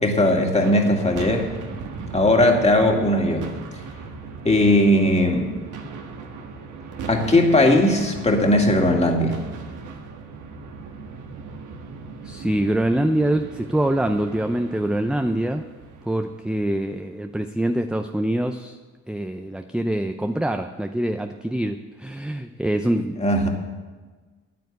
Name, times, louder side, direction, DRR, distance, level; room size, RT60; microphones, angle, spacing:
voice 1, 0.0-1.5 2.1-3.5 4.4-5.5 7.1-9.4 23.2-23.5, left 1 dB, 20° left, 2 dB, 2.3 m, -18 dB
sound 1, 0.5-16.9, right 4 dB, 80° right, 1.7 m, -38 dB
voice 2, 12.2-15.7 16.0-18.8 19.1-23.2, right 1 dB, 5° right, 6 dB, 0.6 m, -24 dB
9.9 x 9.4 x 8.1 m, 1.3 s
cardioid pair, 90°, 30 cm